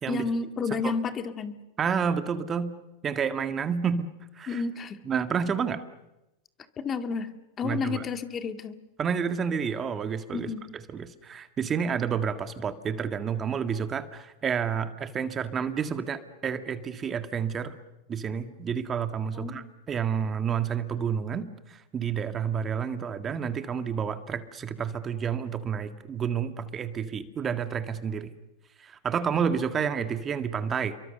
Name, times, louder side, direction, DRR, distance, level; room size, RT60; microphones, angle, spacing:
voice 1, 0.1-1.6 4.5-5.0 6.8-8.8 10.3-10.6 19.3-19.6, left 5 dB, 25° left, 8 dB, 2.0 m, -31 dB
voice 2, 1.8-2.7 3.0-4.1 4.3-4.6 5.1-5.8 7.6-8.0 9.0-10.5 10.9-17.7 18.1-28.3 28.8-30.9, right 7 dB, 25° right, 9 dB, 1.8 m, -30 dB
29.5 x 23.5 x 6.8 m, 0.95 s
hypercardioid pair, 120°, 0 cm